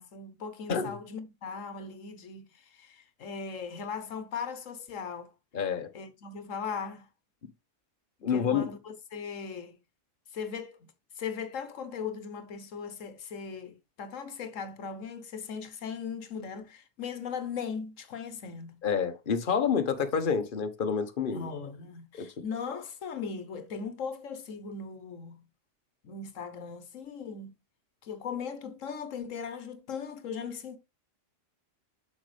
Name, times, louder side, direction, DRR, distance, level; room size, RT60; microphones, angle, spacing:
voice 1, 0.0-5.3 5.9-7.1 8.2-9.8 10.3-18.8 21.3-25.4 26.0-27.5 28.0-30.8, left 6 dB, 85° left, 1.4 m, -38 dB
voice 2, 5.5-5.9 8.2-8.7 18.8-21.5 22.2-22.3, left 6 dB, 45° left, 1.2 m, -28 dB
8.0 x 6.3 x 3.3 m
omnidirectional pair, 1.3 m